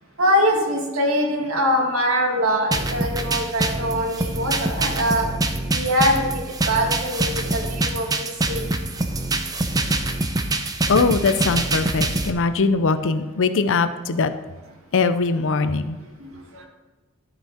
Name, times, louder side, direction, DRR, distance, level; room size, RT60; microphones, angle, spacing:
voice 1, 0.2-5.3 5.7-6.4 6.7-8.7 16.2-16.6, equal, 70° right, 0 dB, 2.0 m, -23 dB
sound 1, 2.7-12.3, right 2 dB, 20° right, 0.6 m, -25 dB
voice 2, 10.9-14.3 14.9-16.0, left 4 dB, 60° left, 11 dB, 0.6 m, -21 dB
12.5 x 5.7 x 4.3 m, 1.2 s
head